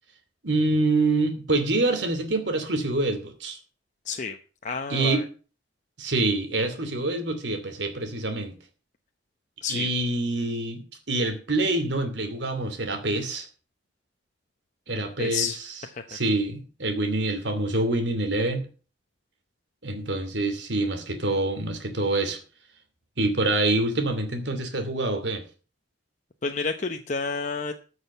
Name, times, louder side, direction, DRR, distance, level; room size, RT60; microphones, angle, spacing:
voice 1, 0.4-3.6 4.9-5.2 6.0-8.5 9.7-10.8 11.1-13.5 14.9-15.5 16.1-18.6 19.8-22.4 23.2-25.4, right 2 dB, 80° right, 7 dB, 2.7 m, -26 dB
voice 2, 4.0-4.4 4.6-5.3 9.6-9.9 14.9-16.1 26.4-27.7, left 4 dB, 45° left, 5 dB, 0.9 m, -30 dB
14.0 x 6.4 x 6.8 m, 0.37 s
head